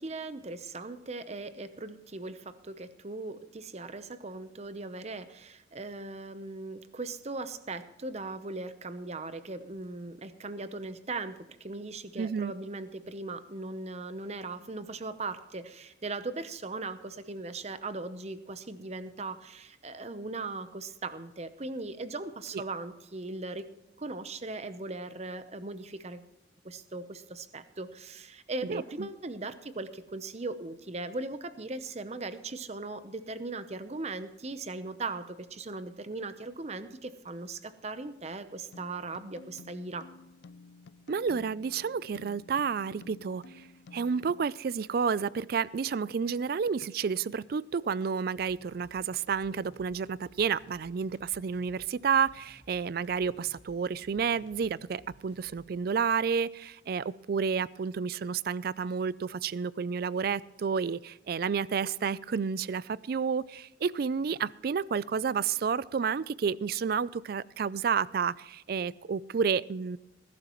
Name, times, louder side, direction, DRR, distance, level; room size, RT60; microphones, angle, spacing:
voice 1, 0.0-23.7 24.0-26.2 26.6-40.1, right 3 dB, 35° right, 11 dB, 0.8 m, -39 dB
voice 2, 12.2-12.5 28.6-29.1 41.1-43.7 43.9-70.0, right 6 dB, 55° right, 20 dB, 0.4 m, -30 dB
sound 1, 38.7-44.5, left 3 dB, 70° left, 0.4 m, -52 dB
sound 2, 48.3-55.9, left 1 dB, 30° left, 2.6 m, -59 dB
20.0 x 12.0 x 3.1 m, 0.95 s
head